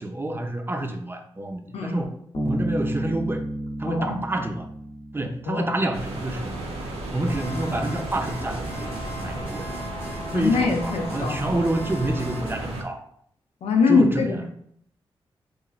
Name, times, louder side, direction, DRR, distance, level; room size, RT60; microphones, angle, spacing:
voice 1, 0.0-2.1 2.4-3.4 3.8-4.7 5.1-6.5 7.1-9.9 10.3-13.0 13.9-14.4, right 1 dB, 20° right, 5 dB, 0.5 m, -28 dB
Bass guitar, 2.3-5.8, right 1 dB, 50° left, 0.8 m, -31 dB
voice 2, 3.9-4.2 5.5-5.7 10.3-11.4 13.6-14.5, left 4 dB, 85° left, 3 dB, 0.5 m, -23 dB
sound 1, 5.9-12.8, right 2 dB, 80° right, 0.5 m, -34 dB
sound 2, 7.2-12.6, left 1 dB, 25° left, 0.9 m, -38 dB
2.9 x 2.4 x 2.4 m, 0.66 s
supercardioid pair, 45°, 10 cm